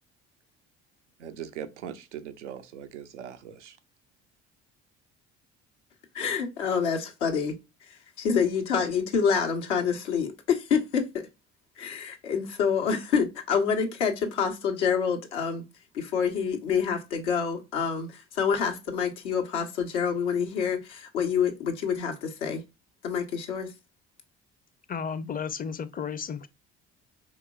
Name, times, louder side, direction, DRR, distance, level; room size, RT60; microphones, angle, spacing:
voice 1, 1.2-3.8, right 9 dB, 90° right, 0.5 m, -40 dB
voice 2, 6.1-7.5 8.2-11.2 11.8-15.6 15.9-22.6 23.0-23.7, left 6 dB, 80° left, 1.0 m, -27 dB
voice 3, 24.9-26.5, left 6 dB, 25° left, 0.5 m, -33 dB
4.8 x 3.1 x 2.3 m
hypercardioid pair, 55°, 35 cm